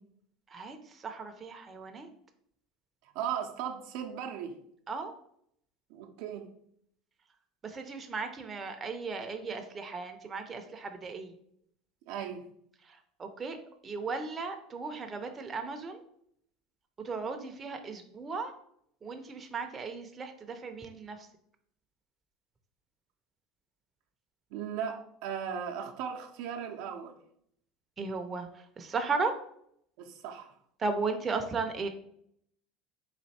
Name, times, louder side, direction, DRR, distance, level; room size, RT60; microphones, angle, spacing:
voice 1, 1.0-2.1 4.9-5.1 7.6-11.3 13.2-13.6 13.8-16.0 17.0-18.5 19.0-21.2 28.0-28.5 28.8-29.3 30.8-31.9, right 4 dB, 25° right, 0.6 m, -35 dB
voice 2, 3.0-4.6 5.9-6.5 12.1-12.5 24.5-27.2 30.0-30.6, right 8 dB, 70° right, 0.6 m, -37 dB
4.2 x 2.7 x 4.2 m
supercardioid pair, 100°, 0 cm